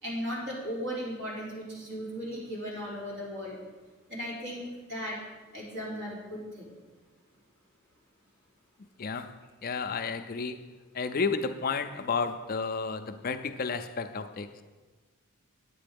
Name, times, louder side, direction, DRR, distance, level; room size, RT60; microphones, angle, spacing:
voice 1, 0.0-3.6 4.1-5.2 5.5-6.6, equal, 55° right, -5 dB, 3.7 m, -36 dB
voice 2, 9.0-14.6, left 4 dB, 40° left, 8 dB, 0.4 m, -32 dB
9.8 x 8.4 x 5.2 m, 1.3 s
head